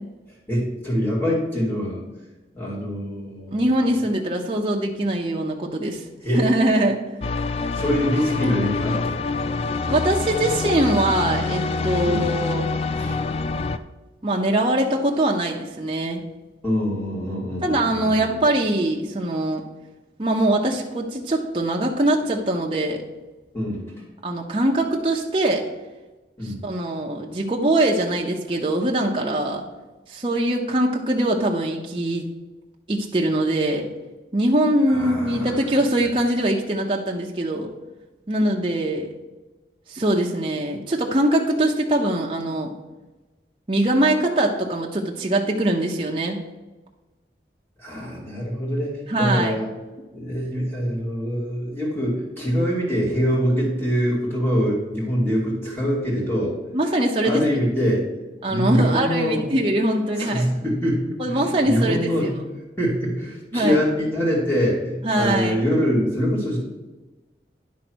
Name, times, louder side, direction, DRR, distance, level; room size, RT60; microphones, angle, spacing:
voice 1, 0.5-2.0 2.5-3.9 6.2-6.5 7.7-9.2 12.0-12.3 12.9-13.2 16.6-18.4 23.5-23.9 26.4-26.6 34.9-35.6 47.8-49.7 50.1-56.6 57.2-58.1 58.5-59.5 60.2-62.3 62.8-66.6, equal, 15° left, -5 dB, 2.5 m, -24 dB
voice 2, 3.5-6.0 6.3-7.0 9.9-12.7 14.2-16.2 17.6-19.6 20.2-23.0 24.2-25.6 26.4-29.6 30.1-32.3 32.9-33.9 34.3-37.7 38.3-39.1 39.9-42.7 43.7-46.4 49.1-49.5 56.7-57.4 58.4-60.5 61.2-62.3 63.5-63.8 65.0-65.6, right 1 dB, 30° right, -1 dB, 0.7 m, -22 dB
sound 1, 7.2-13.8, left 4 dB, 35° left, 0.3 m, -26 dB
10.5 x 3.9 x 6.2 m, 1.1 s
head